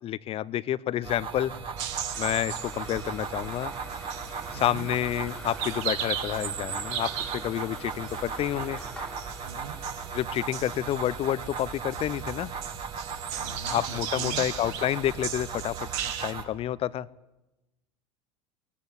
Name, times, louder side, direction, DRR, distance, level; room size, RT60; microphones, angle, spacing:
voice 1, 0.0-1.5 2.2-3.7 4.5-8.8 10.1-12.5 13.7-17.1, left 12 dB, 40° left, 20 dB, 0.7 m, -29 dB
sound 1, 1.0-16.4, right 5 dB, 35° right, 2.5 m, -37 dB
sound 2, 1.8-16.3, right 9 dB, 60° right, 2.0 m, -38 dB
sound 3, 1.9-12.5, left 1 dB, 5° left, 1.4 m, -48 dB
voice 2, 4.5-4.9 9.4-9.8 13.3-14.5, right 5 dB, 75° right, 9 dB, 2.1 m, -41 dB
19.5 x 14.5 x 10.0 m, 1.0 s
hypercardioid pair, 85°, 16 cm